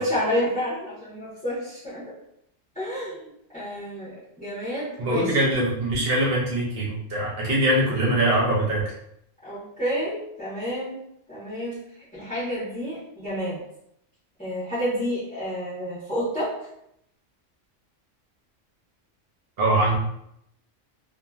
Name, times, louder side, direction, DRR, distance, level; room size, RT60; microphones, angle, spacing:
voice 1, 0.0-2.1 2.7-3.3 3.5-5.4 9.4-11.0 11.3-11.8 12.1-13.6 14.4-16.5, equal, 5° left, -12 dB, 1.0 m, -29 dB
voice 2, 5.0-8.9 19.6-20.0, right 1 dB, 55° right, -4 dB, 0.8 m, -22 dB
2.9 x 2.3 x 2.3 m, 0.77 s
omnidirectional pair, 1.3 m